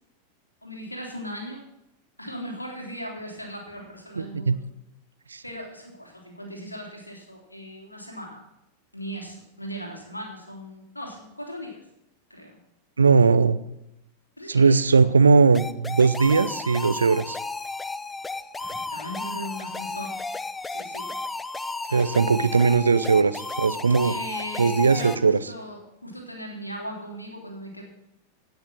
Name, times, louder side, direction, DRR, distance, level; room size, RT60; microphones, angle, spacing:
voice 1, 0.6-1.6 2.2-4.6 5.4-8.4 8.9-11.8 12.3-12.6 14.4-15.1 18.6-20.1 20.7-21.2 21.9-22.2 24.0-27.8, equal, 85° left, 0 dB, 3.4 m, -38 dB
voice 2, 4.2-4.5 5.3-5.4 13.0-13.6 14.5-17.4 21.9-24.1 24.6-25.4, right 4 dB, 75° right, 15 dB, 0.7 m, -19 dB
sound 1, 15.5-25.2, left 3 dB, 10° left, 0.6 m, -33 dB
17.0 x 6.9 x 6.1 m, 0.85 s
figure-of-eight pair, 90°, 0 cm